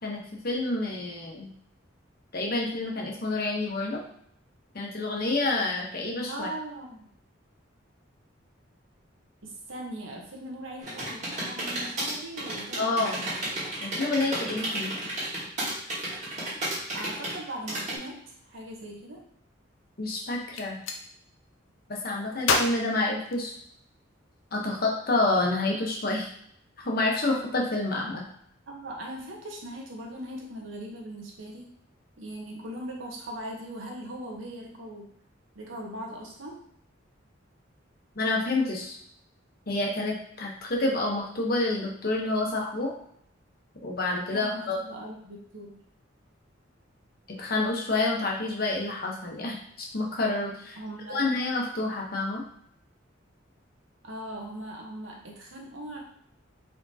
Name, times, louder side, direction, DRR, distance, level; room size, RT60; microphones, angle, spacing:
voice 1, 0.0-1.5 2.3-4.0 4.7-6.5 12.8-13.2 13.8-14.9 20.0-20.8 21.9-23.5 24.5-26.3 26.8-28.2 38.2-39.0 39.7-42.9 43.8-44.8 47.4-50.8 51.1-52.4, left 2 dB, 50° left, -1 dB, 1.0 m, -28 dB
voice 2, 6.3-7.1 9.4-13.2 16.9-19.2 28.7-31.7 32.2-35.1 35.5-36.6 44.3-45.8 50.8-51.2 54.0-56.0, right 1 dB, 80° right, -1 dB, 1.1 m, -40 dB
sound 1, 10.8-17.9, right 1 dB, 35° right, 1.8 m, -32 dB
Gunshot gunfire, 20.5-21.0 22.4-23.9, left 3 dB, 85° left, 0.6 m, -29 dB
4.6 x 3.6 x 2.8 m, 0.69 s
head